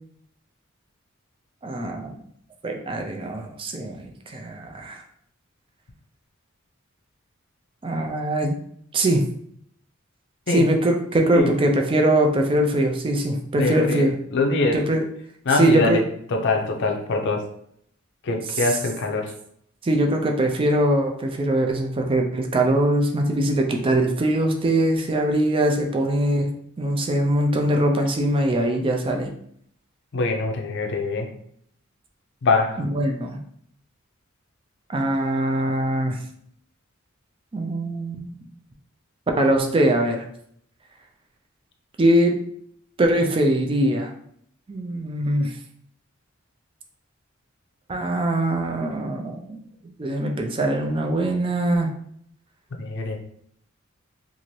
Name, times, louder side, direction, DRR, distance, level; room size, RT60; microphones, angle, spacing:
voice 1, 1.6-2.1 2.6-5.0 7.8-8.6 8.9-9.2 10.5-14.1 14.7-15.0 15.5-16.0 18.5-18.7 19.8-26.5 26.8-29.3 32.8-33.4 34.9-36.2 37.5-38.4 39.4-40.2 42.0-42.4 43.0-44.1 44.7-45.5 47.9-49.6 50.0-51.9, right 1 dB, 25° right, 3 dB, 0.4 m, -22 dB
voice 2, 13.6-14.8 15.5-16.0 16.3-17.4 18.2-19.3 30.1-31.3 32.4-32.8 52.8-53.2, left 3 dB, 55° left, 3 dB, 0.5 m, -23 dB
2.7 x 2.5 x 3.1 m, 0.67 s
head